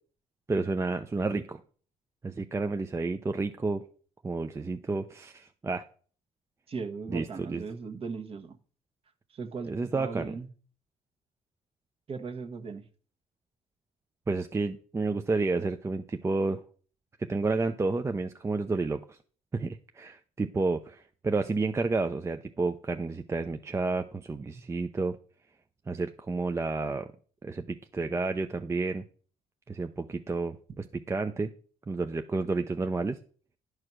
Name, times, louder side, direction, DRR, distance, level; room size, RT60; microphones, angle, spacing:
voice 1, 0.5-1.6 2.2-3.8 4.2-5.8 7.1-7.6 9.7-10.3 14.3-16.6 17.2-19.2 19.5-25.2 25.9-27.1 27.4-29.0 29.7-31.5 31.9-33.2, right 3 dB, 20° right, 0.6 m, -30 dB
voice 2, 6.7-8.6 9.3-10.5 12.1-12.9, right 4 dB, 45° right, 1.3 m, -38 dB
11.0 x 4.8 x 6.1 m
cardioid pair, 95°, 14 cm